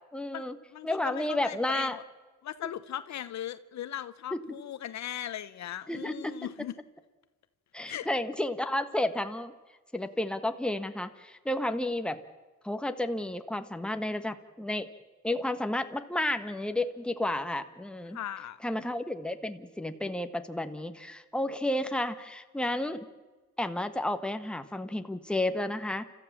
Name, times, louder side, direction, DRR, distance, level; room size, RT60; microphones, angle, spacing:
voice 1, 0.1-0.6 0.8-2.0 4.3-4.4 5.9-6.5 7.7-9.5 9.9-12.2 12.6-14.9 15.2-18.2 18.6-23.1 23.6-26.1, left 1 dB, 5° left, 8 dB, 1.3 m, -31 dB
voice 2, 0.7-2.0 2.4-6.7 7.9-8.1 18.1-18.6, left 11 dB, 65° left, 13 dB, 0.9 m, -38 dB
30.0 x 14.0 x 7.2 m, 1.3 s
cardioid pair, 90°, 30 cm